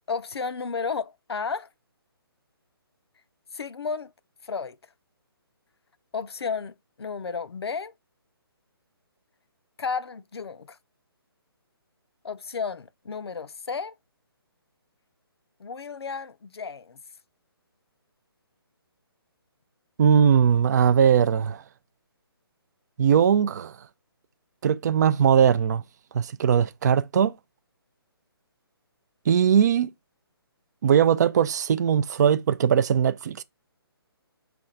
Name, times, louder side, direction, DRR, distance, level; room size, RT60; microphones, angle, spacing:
voice 1, 0.1-1.7 3.5-4.1 4.4-4.8 6.1-7.9 9.8-10.8 12.2-14.0 15.6-17.0, left 5 dB, 80° left, 0.5 m, -32 dB
voice 2, 20.0-21.6 23.0-23.7 24.6-25.8 26.1-27.3 29.3-29.9 30.8-33.4, right 8 dB, 45° right, 0.4 m, -20 dB
5.9 x 2.3 x 3.8 m
figure-of-eight pair, 150°, 13 cm